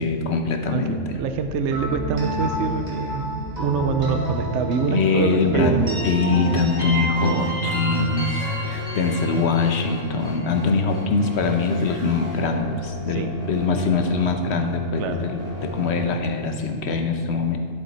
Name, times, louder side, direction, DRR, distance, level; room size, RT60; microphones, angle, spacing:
voice 1, 0.0-1.0 4.9-5.7 6.0-17.6, left 4 dB, 60° left, 5 dB, 1.1 m, -23 dB
sound 1, 0.7-16.1, equal, 50° right, 1.9 m, -36 dB
voice 2, 0.7-6.1 7.2-7.5 13.1-13.3 15.0-15.2, right 6 dB, 65° right, 7 dB, 1.0 m, -25 dB
sound 2, 1.7-11.5, equal, 30° right, 3.1 m, -30 dB
11.5 x 7.5 x 4.2 m, 2.1 s
omnidirectional pair, 1.4 m